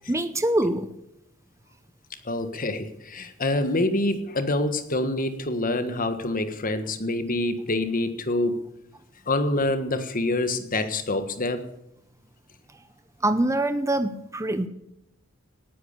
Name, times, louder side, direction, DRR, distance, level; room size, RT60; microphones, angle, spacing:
voice 1, 0.1-0.9 13.2-14.7, right 1 dB, 15° right, 0.7 m, -24 dB
voice 2, 2.2-8.6 9.3-11.7, left 2 dB, 40° left, 1.5 m, -26 dB
19.0 x 9.5 x 6.8 m
head